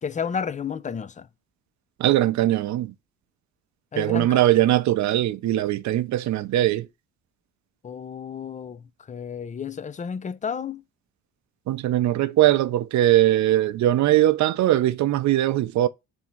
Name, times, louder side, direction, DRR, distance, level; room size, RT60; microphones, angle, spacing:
voice 1, 0.0-1.3 3.9-4.4 7.8-10.8, left 6 dB, 25° left, 0.4 m, -32 dB
voice 2, 2.0-2.9 4.0-6.9 11.7-15.9, right 14 dB, 65° right, 0.6 m, -21 dB
3.6 x 2.8 x 4.4 m
cardioid pair, 90°, 30 cm